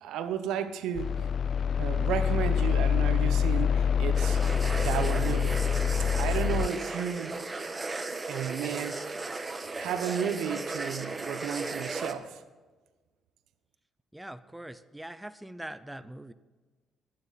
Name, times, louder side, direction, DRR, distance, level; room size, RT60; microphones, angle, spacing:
voice 1, 0.0-1.2 1.8-4.4 4.8-5.6 6.2-7.4 8.1-9.0 9.8-12.4, right 8 dB, 85° right, 1.0 m, -33 dB
sound 1, 0.9-6.7, left 7 dB, 55° left, 0.4 m, -26 dB
sound 2, 4.1-12.1, right 3 dB, 25° right, 1.4 m, -36 dB
voice 2, 14.1-16.3, right 1 dB, 5° right, 0.7 m, -42 dB
23.5 x 9.7 x 4.2 m
cardioid pair, 90°, 0 cm